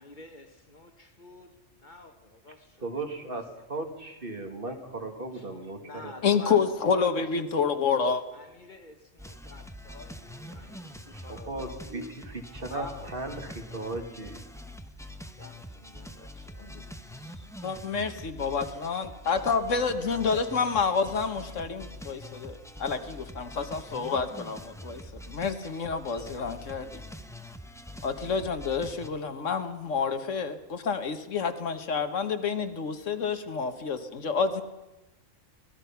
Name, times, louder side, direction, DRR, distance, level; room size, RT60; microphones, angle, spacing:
voice 1, 0.0-2.8 5.3-5.4 5.8-7.5 8.3-12.1 12.7-13.4 14.1-14.2 15.4-17.5, left 2 dB, 40° left, 1.3 m, -47 dB
voice 2, 2.5-6.7 9.9-14.4, right 2 dB, 45° right, 2.2 m, -38 dB
voice 3, 6.2-8.2 17.6-25.0 25.3-27.0 28.0-34.6, left 5 dB, 70° left, 1.6 m, -28 dB
sound 1, 9.2-29.1, equal, 5° left, 0.8 m, -45 dB
24.0 x 19.0 x 5.8 m
omnidirectional pair, 1.3 m